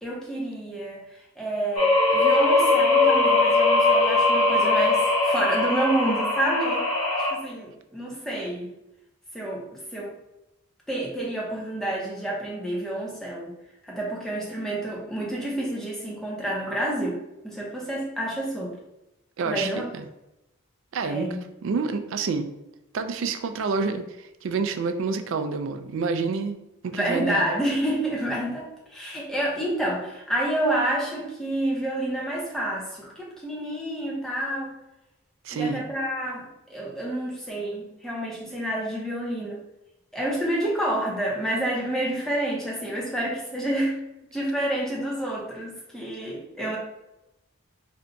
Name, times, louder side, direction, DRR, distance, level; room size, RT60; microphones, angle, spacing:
voice 1, 0.0-6.8 7.2-8.7 9.3-10.2 10.9-13.5 13.8-17.2 17.4-18.8 19.4-19.8 21.0-21.4 26.9-34.7 35.5-39.6 40.1-44.0 44.3-46.8, right 1 dB, ahead, -4 dB, 0.6 m, -29 dB
sound 1, 1.8-7.3, left 2 dB, 90° left, 0.8 m, -20 dB
voice 2, 19.4-20.0 20.9-21.3 21.6-22.5 22.9-26.6 26.8-27.4 35.4-35.8, right 4 dB, 60° right, 8 dB, 0.3 m, -28 dB
2.6 x 2.2 x 3.8 m, 0.90 s
head